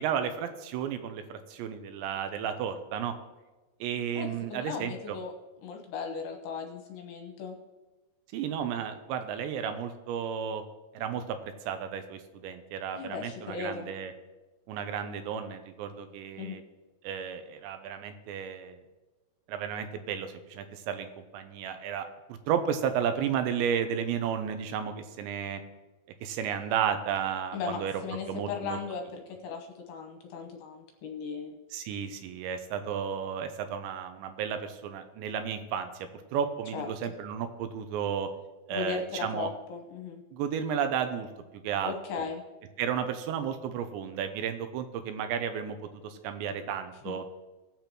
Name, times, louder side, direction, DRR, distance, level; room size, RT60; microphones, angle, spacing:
voice 1, 0.0-3.1 3.8-5.2 8.3-10.6 10.9-14.1 14.7-16.6 17.0-18.8 19.5-22.1 22.5-25.6 26.2-27.9 28.3-28.8 31.7-38.3 38.7-39.5 40.3-41.3 41.6-42.3 42.8-45.8 46.0-47.2, right 8 dB, 85° right, 9 dB, 2.9 m, -33 dB
voice 2, 4.1-5.3 5.6-7.5 12.9-13.9 16.4-16.6 27.5-31.5 36.7-36.9 38.7-40.2 41.8-42.4 47.1-47.2, left 5 dB, 75° left, 2 dB, 2.8 m, -37 dB
19.5 x 7.0 x 3.0 m, 1.2 s
omnidirectional pair, 5.2 m